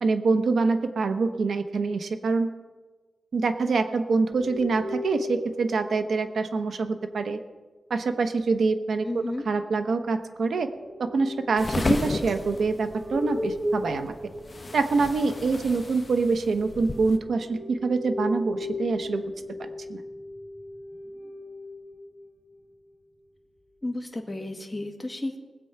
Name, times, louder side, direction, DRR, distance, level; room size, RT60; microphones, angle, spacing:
voice 1, 0.0-2.5 3.3-7.4 7.9-9.1 9.5-10.7 11.0-14.1 14.7-19.2 19.6-20.0, right 4 dB, 80° right, 8 dB, 1.0 m, -25 dB
sound 1, 4.3-6.2 10.6-15.0 16.4-22.6, left 1 dB, 10° right, 3.7 m, -36 dB
voice 2, 9.0-9.4 23.8-25.4, left 2 dB, 15° left, 3 dB, 1.7 m, -32 dB
sound 2, 11.6-17.2, left 3 dB, 35° left, 1.3 m, -33 dB
20.5 x 7.7 x 5.8 m, 1.3 s
wide cardioid pair, 95°, 0 cm